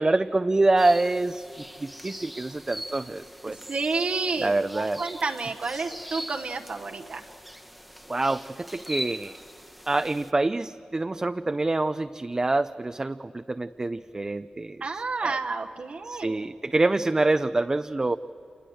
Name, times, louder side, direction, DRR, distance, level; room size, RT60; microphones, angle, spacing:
voice 1, 0.0-1.4 1.8-3.6 4.4-5.0 8.1-9.4 9.9-14.8 15.2-15.4 16.1-18.2, right 2 dB, 25° right, 10 dB, 0.5 m, -26 dB
sound 1, 0.8-10.3, equal, ahead, 1.1 m, -42 dB
voice 2, 3.5-7.2 14.8-16.4, right 4 dB, 55° right, 4 dB, 1.1 m, -30 dB
26.5 x 20.5 x 7.8 m, 2.8 s
cardioid pair, 75°, 2 cm